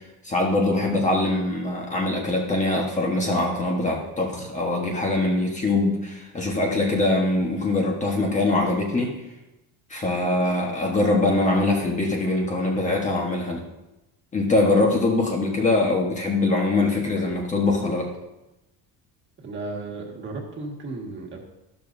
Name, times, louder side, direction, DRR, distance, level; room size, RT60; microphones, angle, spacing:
voice 1, 0.2-9.1 9.9-13.6 14.3-18.1, left 2 dB, 20° left, -1 dB, 1.3 m, -23 dB
voice 2, 19.4-21.4, right 3 dB, 25° right, 0 dB, 1.8 m, -34 dB
12.5 x 12.0 x 2.7 m, 0.96 s
cardioid pair, 175°, 40 cm